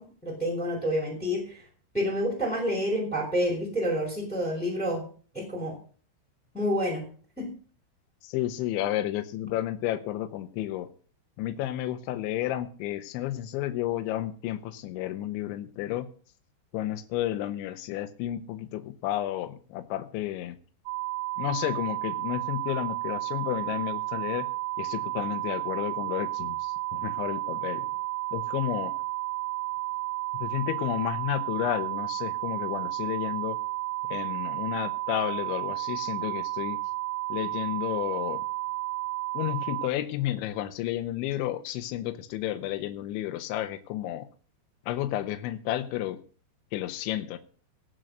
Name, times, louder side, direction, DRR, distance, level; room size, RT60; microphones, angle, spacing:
voice 1, 0.0-1.7 1.9-5.0 5.3-5.7 6.5-7.0 7.4-7.5, equal, ahead, 0 dB, 4.3 m, -28 dB
voice 2, 8.2-10.9 11.4-16.1 16.7-20.6 21.4-24.5 24.8-27.9 28.3-29.0 30.4-33.6 34.1-36.8 37.3-38.4 39.3-44.3 44.9-46.2 46.7-47.4, left 13 dB, 75° left, 7 dB, 3.0 m, -31 dB
sound 1, 20.9-39.9, right 18 dB, 85° right, 3.7 m, -32 dB
18.5 x 6.3 x 6.6 m, 0.41 s
omnidirectional pair, 5.9 m